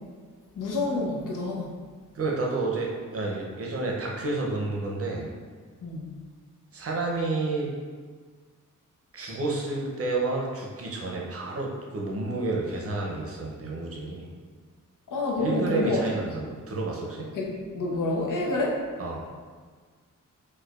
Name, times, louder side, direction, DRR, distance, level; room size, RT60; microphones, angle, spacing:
voice 1, 0.6-1.7 5.8-6.0 15.1-16.0 17.4-18.8, left 2 dB, 75° left, -2 dB, 0.7 m, -28 dB
voice 2, 2.1-5.3 6.7-7.7 9.1-14.3 15.4-17.3 19.0-19.2, right 3 dB, 45° right, -2 dB, 0.6 m, -30 dB
4.4 x 2.3 x 2.4 m, 1.5 s
wide cardioid pair, 130°, 32 cm